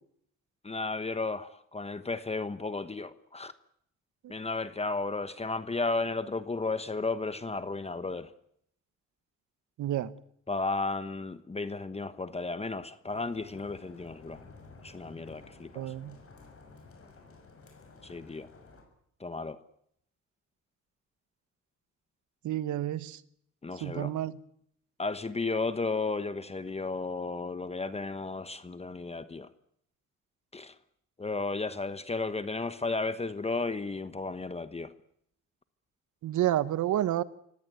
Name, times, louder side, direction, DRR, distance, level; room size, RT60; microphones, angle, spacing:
voice 1, 0.6-3.5 4.3-8.3 10.5-14.4 14.8-15.9 18.0-18.5 19.2-19.6 23.6-24.1 25.0-29.5 30.5-30.7 31.2-34.9, left 3 dB, 20° left, 1.2 m, -33 dB
voice 2, 9.8-10.1 15.7-16.2 22.4-23.2 23.8-24.3 36.2-37.2, right 13 dB, 75° right, 1.2 m, -29 dB
sound 1, 13.1-18.8, left 4 dB, 45° left, 7.0 m, -53 dB
25.5 x 17.5 x 9.4 m
cardioid pair, 90°, 30 cm